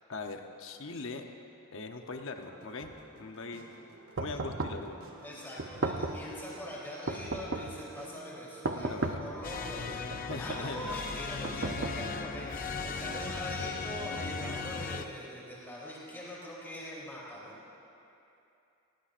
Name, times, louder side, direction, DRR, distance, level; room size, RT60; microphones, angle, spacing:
voice 1, 0.1-1.3 1.7-2.9 3.2-3.7 4.2-5.0 8.7-9.2 9.9-10.9, left 3 dB, 60° left, 5 dB, 0.9 m, -41 dB
sound 1, 2.4-10.4, right 2 dB, 75° right, 1.8 m, -54 dB
sound 2, 4.2-4.9 5.6-6.3 7.1-7.8 8.6-9.4 10.1-10.7 11.4-12.3, right 2 dB, 50° right, 0.6 m, -35 dB
voice 2, 5.2-10.0 10.4-17.6, equal, 10° left, -7 dB, 3.4 m, -42 dB
sound 3, 9.4-15.1, left 4 dB, 40° left, 0.5 m, -37 dB
19.5 x 17.5 x 2.5 m, 2.7 s
head